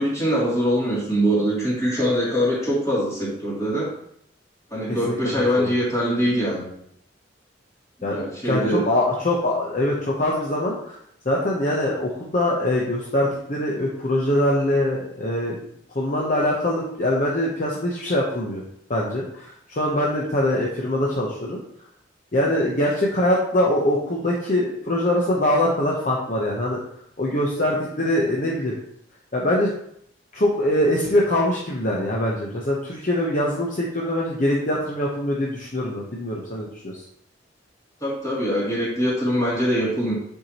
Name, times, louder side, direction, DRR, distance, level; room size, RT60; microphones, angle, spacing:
voice 1, 0.0-3.9 4.7-6.7 8.0-8.8 38.0-40.1, equal, 15° left, -7 dB, 2.6 m, -23 dB
voice 2, 8.0-11.0 11.2-15.6 15.9-18.6 18.9-21.6 22.3-26.8 27.2-28.7 29.3-29.7 30.3-37.0, left 1 dB, 45° left, -3 dB, 0.9 m, -23 dB
8.0 x 4.6 x 3.0 m, 0.71 s
head